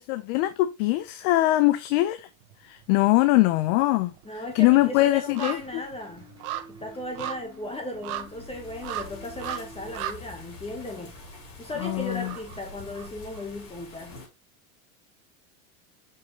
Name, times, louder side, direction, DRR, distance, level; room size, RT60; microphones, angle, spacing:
voice 1, 0.0-2.3 2.6-5.8 11.8-12.3, left 18 dB, 60° left, 0.8 m, -22 dB
sound 1, 2.4-3.2 3.5-13.4 13.8-13.9, right 12 dB, 60° right, 1.3 m, -39 dB
voice 2, 4.2-6.3 6.7-11.1 11.6-14.2, left 2 dB, 15° left, 1.4 m, -36 dB
sound 2, 4.8-10.0, left 1 dB, 10° right, 3.6 m, -50 dB
sound 3, 7.7-14.3, left 3 dB, 40° left, 5.1 m, -46 dB
6.7 x 5.6 x 3.1 m
supercardioid pair, 125°, 43 cm